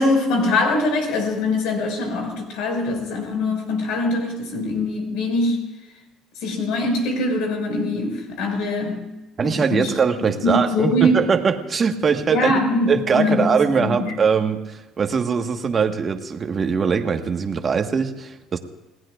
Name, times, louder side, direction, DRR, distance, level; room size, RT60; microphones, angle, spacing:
voice 1, 0.0-5.6 6.4-9.1 9.4-9.9 10.4-11.2 12.3-14.2, left 2 dB, 80° left, 3 dB, 5.5 m, -23 dB
voice 2, 9.4-12.5 12.9-18.6, right 6 dB, 35° right, 5 dB, 1.5 m, -21 dB
29.5 x 18.5 x 2.5 m, 1.1 s
cardioid pair, 120°, 0 cm